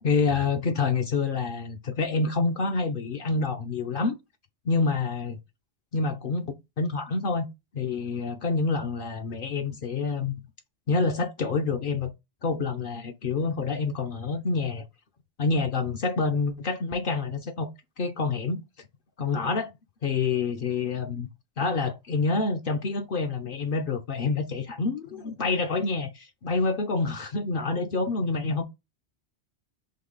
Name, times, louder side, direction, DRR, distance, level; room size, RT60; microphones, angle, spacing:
voice 1, 0.0-4.2 4.7-5.4 5.9-7.5 7.7-10.3 10.9-12.1 12.4-14.8 15.4-17.7 18.0-18.6 19.2-19.7 20.0-21.3 21.6-28.6, left 4 dB, 60° left, 0.7 m, -27 dB
3.9 x 3.1 x 3.7 m
omnidirectional pair, 1.2 m